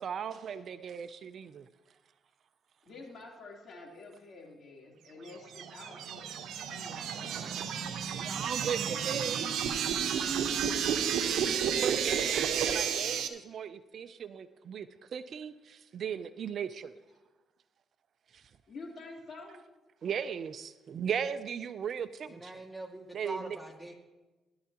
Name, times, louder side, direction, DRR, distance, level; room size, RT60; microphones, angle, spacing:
voice 1, 0.0-1.7 7.0-7.7 8.2-9.4 11.8-16.9 18.3-18.5 20.0-22.6 23.1-23.6, right 7 dB, 60° right, 12 dB, 0.5 m, -37 dB
voice 2, 2.8-7.4 11.2-11.9 18.7-19.6, left 3 dB, 55° left, -1 dB, 3.4 m, -49 dB
sound 1, 5.3-13.3, right 8 dB, 75° right, 0.9 m, -31 dB
voice 3, 22.3-23.9, right 1 dB, ahead, 1 dB, 2.0 m, -43 dB
16.5 x 11.0 x 3.0 m, 1.1 s
cardioid pair, 90°, 0 cm